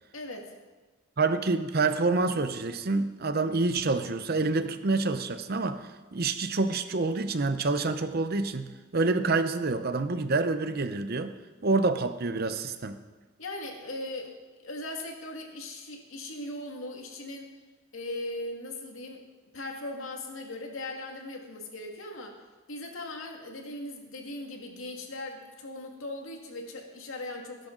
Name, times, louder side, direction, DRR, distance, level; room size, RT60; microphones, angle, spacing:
voice 1, 0.1-0.5 13.4-14.4 14.6-17.5 17.9-19.2 19.5-22.4 22.7-27.7, left 2 dB, 80° left, 2 dB, 2.1 m, -39 dB
voice 2, 1.2-8.7 8.9-11.3 11.6-13.0, right 3 dB, 50° right, 10 dB, 0.8 m, -27 dB
19.5 x 10.5 x 3.9 m, 1.2 s
head